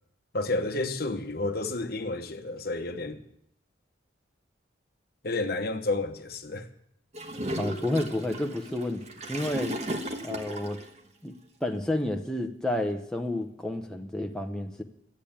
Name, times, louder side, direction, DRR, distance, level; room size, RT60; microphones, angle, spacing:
voice 1, 0.3-3.2 5.2-6.7, left 2 dB, 50° left, 1.0 m, -30 dB
Gurgling / Toilet flush, 7.1-10.9, right 1 dB, 35° right, 1.2 m, -35 dB
voice 2, 7.6-9.0 9.3-9.8 10.2-10.8 11.2-11.3 11.6-14.8, left 1 dB, 5° left, 0.8 m, -30 dB
12.5 x 8.6 x 8.7 m
head